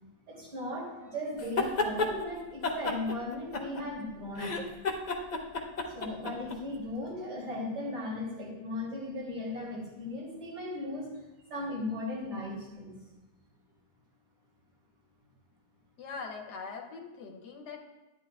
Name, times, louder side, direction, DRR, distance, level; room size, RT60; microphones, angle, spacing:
voice 1, 0.3-4.6 5.9-11.1 11.5-13.0, left 1 dB, 75° right, -5 dB, 3.4 m, -37 dB
sound 1, 1.4-2.1 2.6-4.0 4.3-6.6, left 3 dB, 55° left, 0.4 m, -31 dB
voice 2, 16.0-17.8, left 5 dB, 75° left, 2 dB, 1.3 m, -42 dB
11.0 x 9.7 x 2.3 m, 1.1 s
omnidirectional pair, 1.8 m